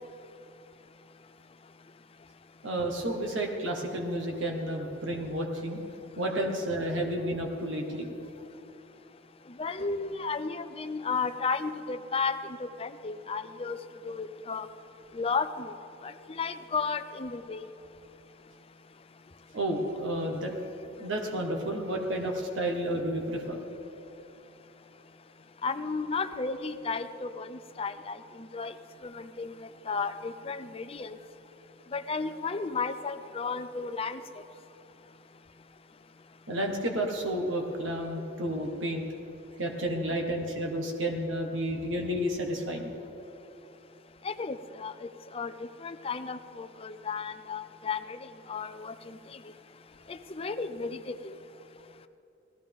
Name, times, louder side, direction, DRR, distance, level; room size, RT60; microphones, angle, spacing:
voice 1, 2.6-5.8 6.2-8.1 19.5-20.5 21.0-23.6 36.5-39.1 39.6-42.9, right 1 dB, 90° right, 1 dB, 1.5 m, -31 dB
voice 2, 9.6-13.8 14.0-14.7 15.1-15.7 16.0-17.7 25.6-28.2 28.5-28.7 29.0-29.5 29.9-31.2 31.9-34.2 44.2-45.1 45.3-45.5 45.8-48.2 48.5-49.2 50.1-51.3, left 4 dB, 30° left, 9 dB, 0.5 m, -33 dB
18.5 x 14.5 x 3.6 m, 3.0 s
head